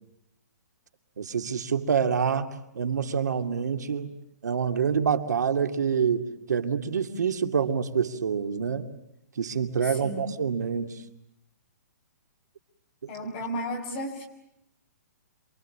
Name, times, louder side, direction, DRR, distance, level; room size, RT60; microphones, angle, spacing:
voice 1, 1.2-4.1 4.4-8.9 9.4-11.0 13.0-13.1, right 6 dB, 80° right, 7 dB, 2.5 m, -27 dB
voice 2, 9.8-10.3 13.1-14.3, equal, 20° left, 0 dB, 5.9 m, -34 dB
28.0 x 23.5 x 8.6 m, 0.80 s
hypercardioid pair, 180°, 9 cm